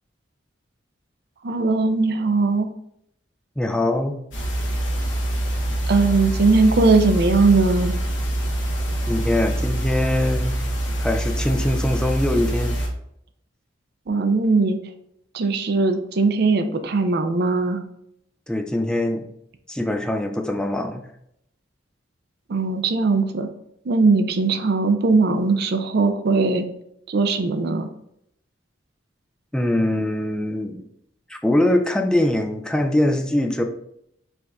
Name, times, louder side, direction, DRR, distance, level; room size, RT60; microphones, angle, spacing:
voice 1, 1.4-2.7 5.9-7.9 14.1-14.8 15.3-17.8 22.5-23.5 23.9-26.7 27.1-27.9, right 3 dB, 60° right, 7 dB, 0.5 m, -19 dB
voice 2, 3.6-4.2 9.1-10.6 11.0-12.8 18.5-19.2 19.7-21.0 29.5-30.8 31.3-33.6, left 1 dB, 5° left, 4 dB, 0.3 m, -22 dB
sound 1, 4.3-12.9, right 1 dB, 75° left, 1.0 m, -25 dB
4.8 x 2.5 x 3.4 m, 0.75 s
head